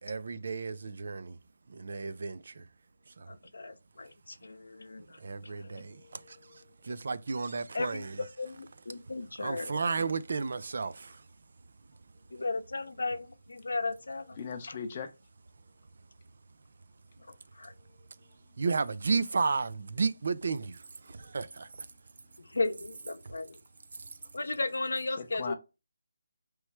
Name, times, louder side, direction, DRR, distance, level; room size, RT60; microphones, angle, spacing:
voice 1, 0.0-1.4 1.7-2.7 3.2-3.3 5.2-8.2 9.4-11.2 18.6-21.7, right 4 dB, 50° right, 0.3 m, -33 dB
voice 2, 3.3-5.8 7.7-10.0 12.3-14.8 17.2-17.7 22.4-23.6 24.3-25.5, left 3 dB, 80° left, 0.7 m, -36 dB
voice 3, 5.9-6.7 14.4-15.1 25.4-25.5, left 6 dB, 25° left, 0.6 m, -40 dB
3.2 x 3.0 x 4.6 m
hypercardioid pair, 170°, 0 cm